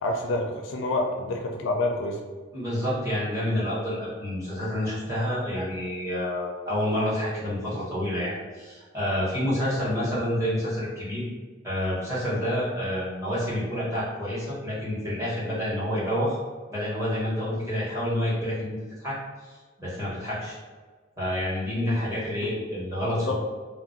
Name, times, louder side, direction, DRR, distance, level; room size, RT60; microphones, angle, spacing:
voice 1, 0.0-2.2 22.4-22.5 23.0-23.3, left 2 dB, 70° left, 2 dB, 0.4 m, -28 dB
voice 2, 2.5-11.2 11.6-16.4 16.7-19.1 19.4-20.6 21.2-23.3, equal, 15° right, -9 dB, 1.0 m, -28 dB
2.4 x 2.0 x 3.8 m, 1.4 s
head